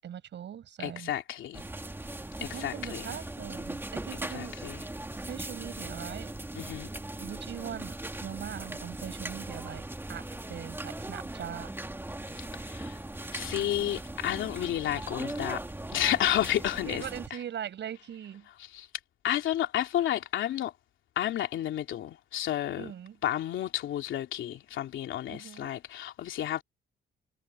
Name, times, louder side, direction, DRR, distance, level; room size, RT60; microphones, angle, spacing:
voice 1, 0.0-1.1 2.4-4.6 5.2-6.3 7.2-9.8 10.1-11.7 16.9-18.5 22.8-23.2 25.3-25.7, right 9 dB, 65° right, 7.2 m, -41 dB
voice 2, 0.8-1.6 2.4-3.2 4.1-4.8 6.5-6.9 12.3-13.0 13.3-15.7 15.9-17.4 18.6-18.9 19.2-20.7 21.2-22.9 23.2-26.6, left 12 dB, 75° left, 3.0 m, -31 dB
sound 1, 1.5-17.3, right 1 dB, 10° right, 2.4 m, -39 dB
cardioid pair, 90°, 20 cm